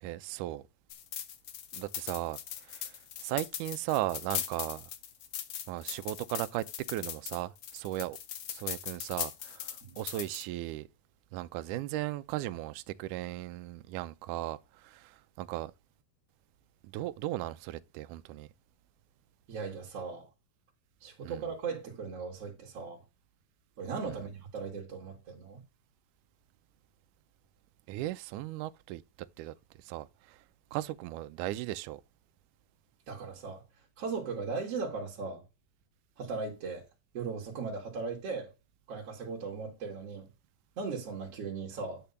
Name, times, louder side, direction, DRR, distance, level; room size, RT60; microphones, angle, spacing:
voice 1, 0.0-0.6 1.7-3.0 3.2-4.9 5.7-8.2 8.5-10.9 11.3-15.7 16.9-18.5 21.2-21.4 24.1-24.2 27.9-29.0 29.4-30.4 30.7-32.0, right 15 dB, 80° right, 1.8 m, -37 dB
sound 1, 0.9-10.4, left 10 dB, 75° left, 1.5 m, -39 dB
voice 2, 19.5-20.3 21.0-23.0 23.8-25.6 33.1-33.6 34.0-35.4 36.2-36.8 37.1-38.5 38.9-40.3 40.8-42.0, right 4 dB, 45° right, 3.0 m, -38 dB
10.0 x 3.4 x 6.9 m
omnidirectional pair, 4.2 m